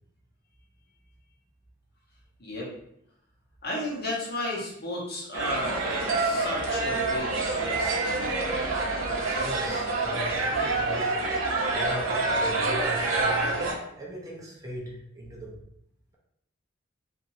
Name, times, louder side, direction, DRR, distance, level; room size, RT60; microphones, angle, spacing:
voice 1, 3.6-8.6, left 1 dB, 50° left, -4 dB, 0.9 m, -34 dB
sound 1, 5.3-13.7, right 3 dB, 75° right, 0.7 m, -27 dB
voice 2, 9.3-11.1 11.7-13.5 14.0-15.5, equal, 15° right, -4 dB, 0.6 m, -38 dB
3.0 x 2.6 x 2.6 m, 0.75 s
head